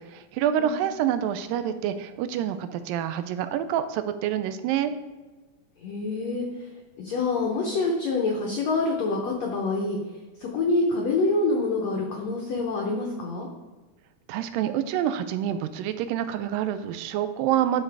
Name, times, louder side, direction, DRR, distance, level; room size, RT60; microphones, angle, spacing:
voice 1, 0.0-4.9 14.3-17.8, right 10 dB, 80° right, 11 dB, 2.1 m, -27 dB
voice 2, 5.8-6.7 7.0-10.0 10.4-13.5, left 3 dB, 80° left, 0 dB, 1.5 m, -26 dB
12.0 x 4.7 x 3.4 m, 1.3 s
omnidirectional pair, 4.2 m